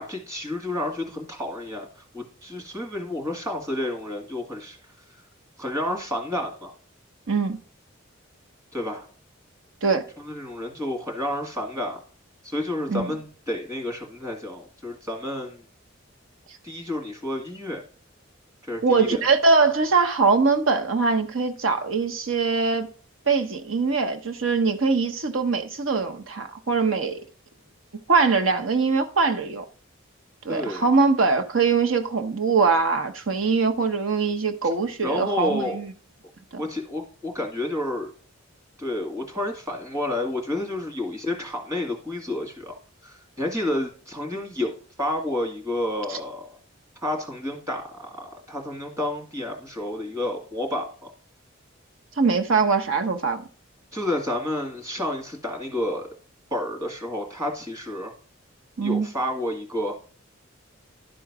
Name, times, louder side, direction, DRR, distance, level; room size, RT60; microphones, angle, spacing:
voice 1, 0.0-1.9 2.1-4.8 5.6-6.7 8.7-9.0 10.2-12.0 12.4-15.6 16.6-17.8 18.7-19.2 30.5-30.9 35.0-35.8 36.6-38.1 38.8-42.7 43.0-44.7 45.0-46.6 47.0-50.9 53.9-56.1 56.5-58.1 58.8-60.0, left 1 dB, 15° right, 2.0 m, -30 dB
voice 2, 7.3-7.6 9.8-10.1 12.9-13.1 18.8-22.9 23.3-27.2 28.1-29.6 30.4-35.9 36.5-36.6 46.1-46.2 52.2-53.4 58.8-59.1, right 4 dB, 80° right, 0.9 m, -22 dB
11.5 x 3.8 x 6.0 m
head